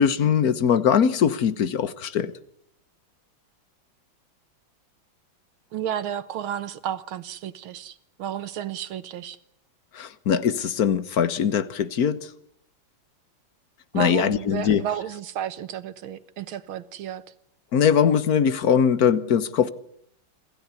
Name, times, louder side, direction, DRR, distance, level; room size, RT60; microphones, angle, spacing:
voice 1, 0.0-2.3 9.9-12.2 13.9-14.8 17.7-19.7, left 7 dB, 50° left, 1.5 m, -21 dB
voice 2, 5.7-9.4 13.9-17.2, right 10 dB, 85° right, 2.0 m, -32 dB
27.0 x 15.0 x 9.7 m
omnidirectional pair, 2.2 m